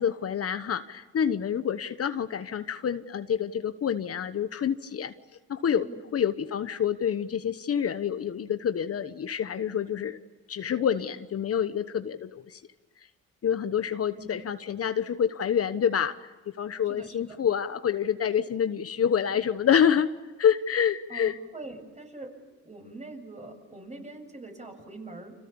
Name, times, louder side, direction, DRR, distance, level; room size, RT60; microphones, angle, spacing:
voice 1, 0.0-5.1 5.5-10.2 10.5-12.6 13.4-16.3 16.6-20.1 20.4-21.4, left 8 dB, 50° left, 10 dB, 1.2 m, -27 dB
voice 2, 16.9-17.4 21.1-22.3 22.6-25.3, right 2 dB, 25° right, 4 dB, 7.5 m, -43 dB
30.0 x 27.5 x 7.2 m, 1.2 s
cardioid pair, 90°, 30 cm